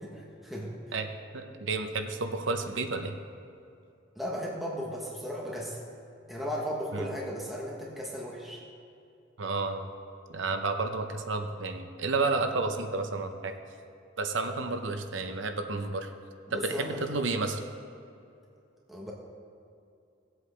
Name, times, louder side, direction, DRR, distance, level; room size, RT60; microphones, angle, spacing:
voice 1, 0.0-0.7 4.2-5.8 6.3-8.6 14.4-14.5 16.5-17.0 18.9-19.1, equal, ahead, -4 dB, 1.1 m, -36 dB
voice 2, 0.9-3.1 6.9-7.1 9.4-9.9 10.3-13.5 14.2-16.1 16.5-17.6, right 3 dB, 70° right, 6 dB, 0.8 m, -31 dB
18.5 x 8.1 x 3.3 m, 2.6 s
head